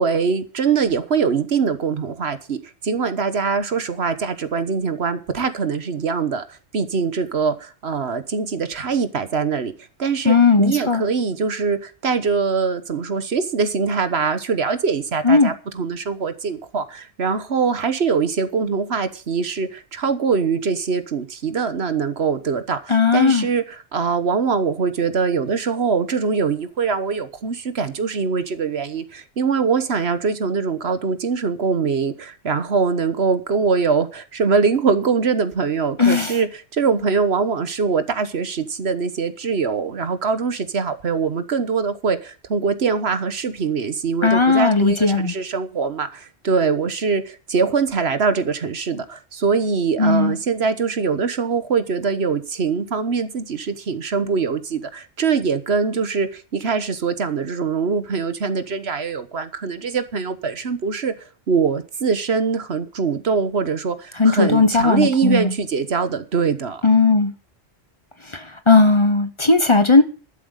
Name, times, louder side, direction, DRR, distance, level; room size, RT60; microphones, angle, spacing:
voice 1, 0.0-2.6 2.8-6.4 6.7-9.7 10.0-23.6 23.9-36.5 36.7-61.1 61.5-66.8, right 5 dB, 75° right, 1.4 m, -23 dB
voice 2, 10.2-11.0 15.2-15.5 22.9-23.5 36.0-36.4 44.2-45.3 50.0-50.4 64.2-65.5 66.8-67.3 68.3-70.0, left 4 dB, 30° left, 1.1 m, -16 dB
12.5 x 7.8 x 6.6 m
omnidirectional pair, 1.1 m